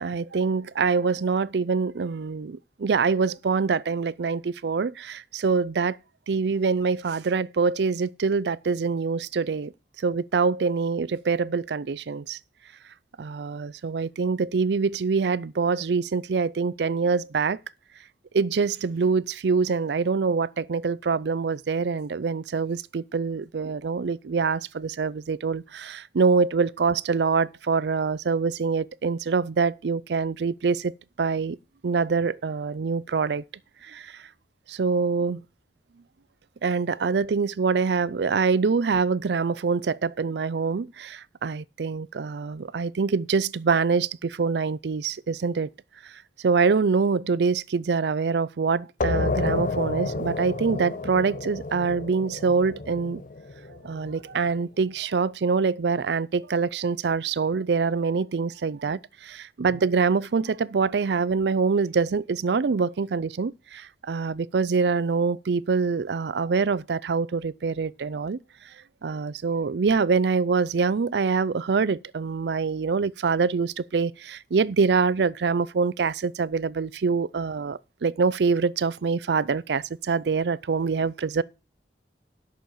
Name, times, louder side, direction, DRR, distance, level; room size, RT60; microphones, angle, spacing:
voice 1, 0.0-6.0 6.3-9.7 10.0-12.4 13.2-17.6 18.3-31.6 31.8-33.4 33.8-34.2 34.7-35.4 36.6-45.7 46.4-53.2 53.8-68.4 69.0-81.4, right 5 dB, 70° right, 0.5 m, -25 dB
sound 1, 49.0-54.3, left 3 dB, 50° left, 0.7 m, -30 dB
9.1 x 6.4 x 7.0 m
head